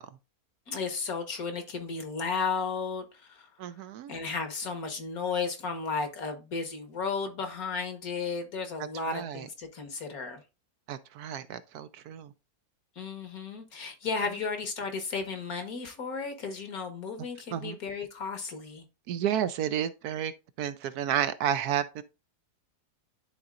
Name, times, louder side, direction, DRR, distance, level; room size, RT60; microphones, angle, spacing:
voice 1, 0.7-3.5 4.1-10.4 13.0-18.8, left 5 dB, 60° left, 1.8 m, -34 dB
voice 2, 3.6-4.1 9.0-9.5 10.9-12.3 17.5-17.8 19.1-20.3 20.6-22.0, right 10 dB, 75° right, 1.1 m, -31 dB
11.5 x 4.0 x 2.4 m
omnidirectional pair, 1.8 m